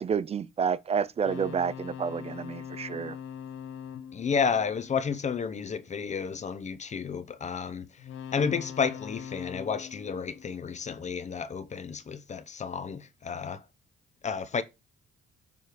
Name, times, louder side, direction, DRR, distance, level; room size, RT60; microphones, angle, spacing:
voice 1, 0.0-3.2, right 6 dB, 30° right, 0.3 m, -29 dB
sound 1, 1.2-5.6 8.0-11.3, left 8 dB, 80° left, 0.6 m, -43 dB
voice 2, 4.1-7.9 8.3-13.6 14.2-14.6, left 6 dB, 35° left, 0.6 m, -31 dB
6.9 x 3.2 x 4.8 m
cardioid pair, 90°, 20 cm